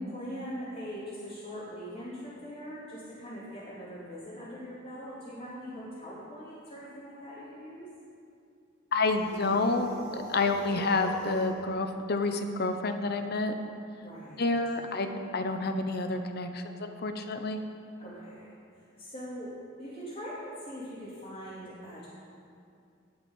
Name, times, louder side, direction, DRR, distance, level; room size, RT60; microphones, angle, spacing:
voice 1, 0.1-7.9 14.0-14.5 18.0-18.5 18.7-19.5 19.8-22.1, equal, 30° left, -11 dB, 2.9 m, -42 dB
voice 2, 8.9-13.5 14.4-17.6, left 3 dB, 50° left, 7 dB, 0.8 m, -29 dB
sound 1, 9.0-11.6, right 1 dB, 45° right, 3.3 m, -43 dB
17.5 x 5.9 x 5.4 m, 2.5 s
head